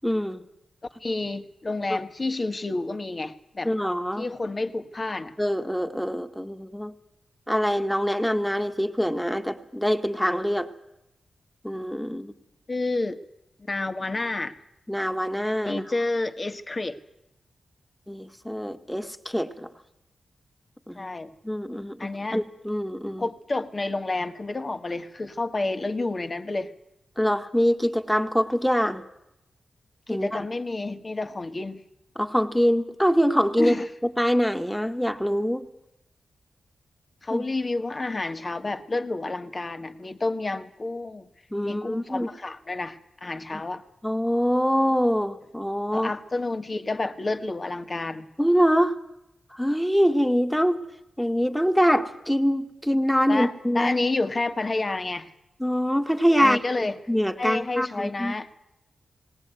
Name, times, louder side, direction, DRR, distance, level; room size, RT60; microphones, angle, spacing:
voice 1, 0.0-0.4 1.9-2.0 3.6-4.3 5.4-6.9 7.5-10.7 11.6-12.3 14.9-15.8 18.1-19.7 20.9-21.1 21.4-23.3 27.2-29.0 30.1-30.4 32.2-33.8 34.2-35.7 37.3-37.5 41.5-42.3 43.5-43.6 44.0-46.1 48.4-49.0 49.5-50.8 51.2-54.1 55.6-56.6 57.1-58.4, equal, 5° left, 2.0 m, -24 dB
voice 2, 1.0-3.7 4.2-5.3 12.7-13.2 13.7-14.6 15.6-17.0 20.9-21.3 22.0-22.4 23.2-26.7 30.1-31.8 33.6-33.9 37.2-41.3 41.6-43.8 45.9-48.3 53.3-55.3 56.4-57.0 57.4-58.6, left 2 dB, 40° left, 1.7 m, -29 dB
19.0 x 18.5 x 9.2 m
cardioid pair, 50°, 0 cm